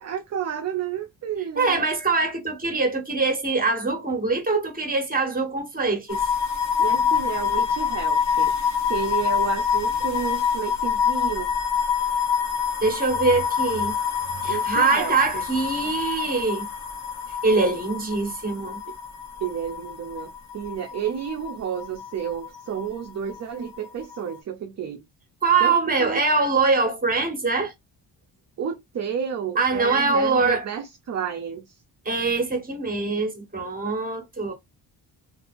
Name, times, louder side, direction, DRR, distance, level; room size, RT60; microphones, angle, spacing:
voice 1, 0.0-1.9 6.8-8.5 8.9-11.5 14.4-15.4 19.4-25.0 25.6-26.2 28.6-31.7, right 8 dB, 35° right, 0.5 m, -31 dB
voice 2, 1.6-6.3 12.8-13.9 14.4-16.7 17.4-18.8 25.4-27.7 29.5-30.6 32.0-34.5, right 4 dB, 20° right, 1.4 m, -23 dB
sound 1, 6.1-23.0 23.3-24.3, left 7 dB, 40° left, 0.9 m, -26 dB
2.7 x 2.5 x 2.5 m
supercardioid pair, 65°, 45 cm